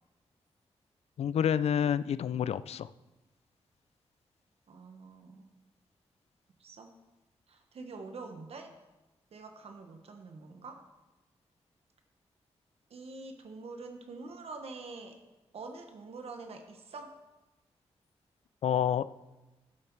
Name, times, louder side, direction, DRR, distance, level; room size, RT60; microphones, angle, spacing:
voice 1, 1.2-2.9 18.6-19.1, left 9 dB, 75° left, 16 dB, 0.4 m, -28 dB
voice 2, 4.7-5.5 6.6-7.0 7.5-8.8 9.3-10.9 12.9-15.2 15.5-17.2, right 3 dB, 70° right, 5 dB, 1.1 m, -45 dB
11.5 x 7.7 x 4.6 m, 1.1 s
cardioid pair, 95°, 11 cm